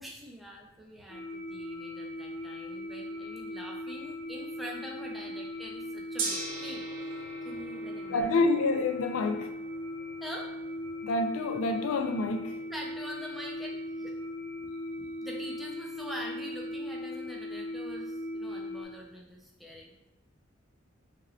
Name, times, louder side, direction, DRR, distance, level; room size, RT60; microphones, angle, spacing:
voice 1, 0.0-6.8 7.4-8.3 10.2-10.5 12.7-14.1 15.2-19.9, equal, ahead, 0.3 m, -44 dB
sound 1, 1.1-18.9, left 1 dB, 40° left, 0.6 m, -39 dB
Gong, 6.2-16.4, right 4 dB, 65° right, 0.5 m, -44 dB
voice 2, 8.1-9.5 11.0-12.6, left 3 dB, 85° left, 0.3 m, -28 dB
2.9 x 2.7 x 2.7 m
head